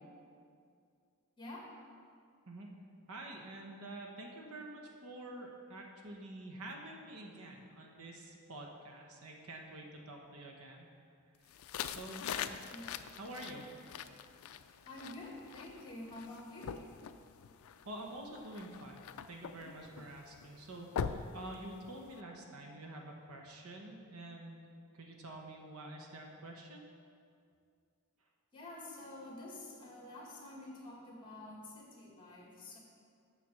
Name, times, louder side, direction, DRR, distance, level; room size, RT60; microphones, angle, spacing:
voice 1, 1.4-1.7 12.7-12.8 14.9-16.9 22.1-22.3 28.5-32.8, left 1 dB, 20° left, -3 dB, 2.1 m, -48 dB
voice 2, 3.1-10.9 11.9-12.5 13.2-13.7 17.8-19.0 19.3-24.6 24.9-26.9, right 1 dB, 75° right, 1 dB, 1.1 m, -48 dB
sound 1, 11.5-22.2, left 7 dB, 70° left, 0.4 m, -44 dB
7.4 x 6.9 x 6.3 m, 2.3 s
head